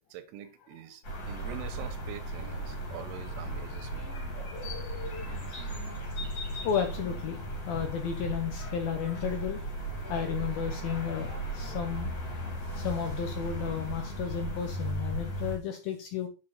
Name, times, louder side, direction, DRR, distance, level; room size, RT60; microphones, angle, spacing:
voice 1, 0.0-4.1, right 11 dB, 85° right, 3.5 m, -45 dB
sound 1, 1.0-15.6, right 1 dB, 35° left, 4.1 m, -36 dB
voice 2, 1.1-1.7 4.1-5.3 6.6-7.4 7.7-9.7 10.1-12.1 12.4-16.3, left 8 dB, 70° left, 2.3 m, -34 dB
sound 2, 1.6-11.8, right 1 dB, 5° right, 2.1 m, -53 dB
8.6 x 7.6 x 4.2 m
omnidirectional pair, 5.5 m